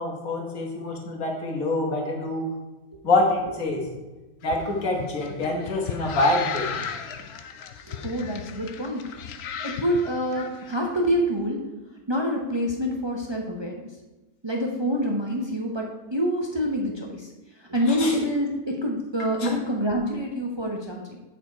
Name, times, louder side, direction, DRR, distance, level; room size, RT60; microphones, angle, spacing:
voice 1, 0.0-2.5 3.0-3.8 4.4-6.7 18.0-18.1 19.4-19.5, left 2 dB, 55° left, 0 dB, 1.9 m, -25 dB
sound 1, 4.4-10.8, left 7 dB, 80° left, 0.5 m, -36 dB
voice 2, 7.8-9.1 9.6-11.6 12.1-13.9 14.4-21.2, equal, 35° right, 0 dB, 0.4 m, -27 dB
9.2 x 4.4 x 4.6 m, 1.1 s
omnidirectional pair, 1.8 m